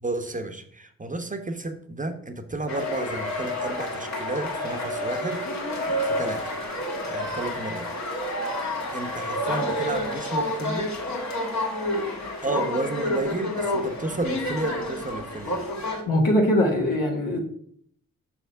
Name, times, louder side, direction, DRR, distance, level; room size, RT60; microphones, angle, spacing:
voice 1, 0.0-5.4 5.9-6.4 7.1-7.9 8.9-10.9 12.4-15.6, right 2 dB, 25° right, 7 dB, 0.8 m, -32 dB
sound 1, 2.7-16.0, left 1 dB, 55° left, 1.5 m, -29 dB
voice 2, 16.1-17.4, left 1 dB, 75° left, 1 dB, 1.5 m, -21 dB
5.7 x 3.5 x 5.5 m, 0.63 s
supercardioid pair, 40°, 33 cm